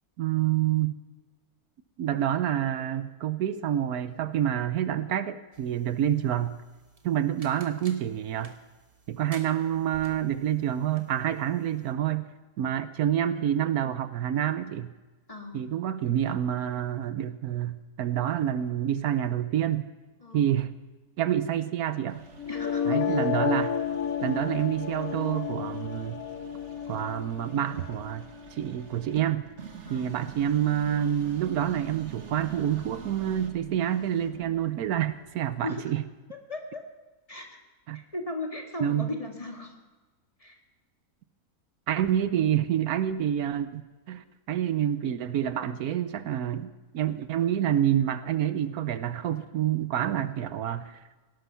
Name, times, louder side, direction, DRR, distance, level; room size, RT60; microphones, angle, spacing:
voice 1, 0.2-0.9 2.0-6.6 7.0-8.5 9.1-12.3 12.6-14.9 15.5-19.9 20.3-20.7 21.2-22.2 22.9-23.8 24.2-26.2 26.9-29.4 29.9-36.0 37.9-38.0 38.8-39.1 41.9-51.0, right 10 dB, 75° right, 13 dB, 1.2 m, -28 dB
sound 1, 5.5-11.9, right 3 dB, 25° right, 1.3 m, -54 dB
voice 2, 15.3-15.6 20.2-20.5 22.5-23.1 29.9-30.1 34.4-34.6 35.6-35.8 36.5-36.9 37.3-37.6 38.1-39.7 40.4-40.6, left 2 dB, 25° left, 2 dB, 1.9 m, -37 dB
sound 2, 22.1-35.6, right 5 dB, 50° right, 1.7 m, -47 dB
sound 3, 22.4-28.4, left 8 dB, 65° left, 1.2 m, -31 dB
18.0 x 12.0 x 5.6 m, 1.2 s
omnidirectional pair, 1.6 m